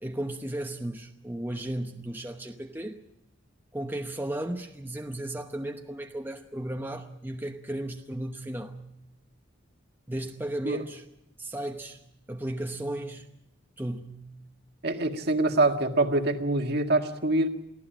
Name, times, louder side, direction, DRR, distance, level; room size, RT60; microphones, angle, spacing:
voice 1, 0.0-3.0 3.7-8.8 10.1-11.0 11.4-12.0 12.3-13.3 13.8-14.3, right 1 dB, 10° right, 4 dB, 0.9 m, -35 dB
voice 2, 14.8-17.5, right 2 dB, 50° right, 6 dB, 1.8 m, -25 dB
23.5 x 15.5 x 9.0 m, 0.85 s
head